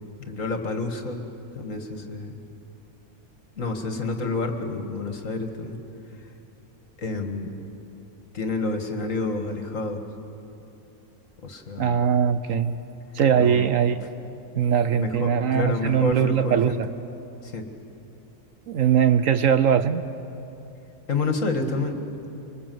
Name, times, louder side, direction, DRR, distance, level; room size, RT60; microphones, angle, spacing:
voice 1, 0.2-1.2 1.5-2.4 3.6-5.8 7.0-7.5 8.3-10.0 11.4-12.0 13.4-13.7 15.0-16.8 17.4-17.7 21.1-22.0, left 3 dB, 55° left, 5 dB, 2.2 m, -29 dB
voice 2, 11.8-12.7 13.1-14.0 14.5-16.9 18.7-20.0, right 8 dB, 60° right, 12 dB, 1.0 m, -21 dB
25.0 x 25.0 x 7.8 m, 2.8 s
omnidirectional pair, 1.7 m